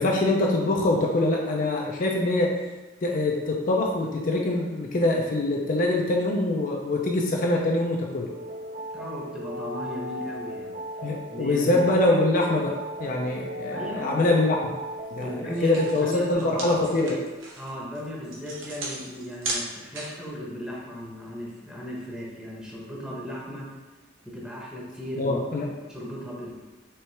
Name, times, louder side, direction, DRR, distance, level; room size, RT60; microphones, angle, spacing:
voice 1, 0.0-2.5 3.0-8.3 11.0-12.7 13.0-14.7 15.1-15.3 15.6-17.2 25.2-25.7, left 2 dB, 45° left, -1 dB, 0.4 m, -24 dB
sound 1, 8.3-16.3, equal, 50° right, 0.5 m, -37 dB
voice 2, 8.9-10.8 11.3-11.9 13.7-14.2 15.2-16.8 17.5-23.7 24.2-26.5, equal, 5° right, -5 dB, 0.8 m, -36 dB
sound 2, 15.1-15.2 15.5-20.3, right 2 dB, 75° right, 1.0 m, -36 dB
4.5 x 3.2 x 3.2 m, 1.2 s
head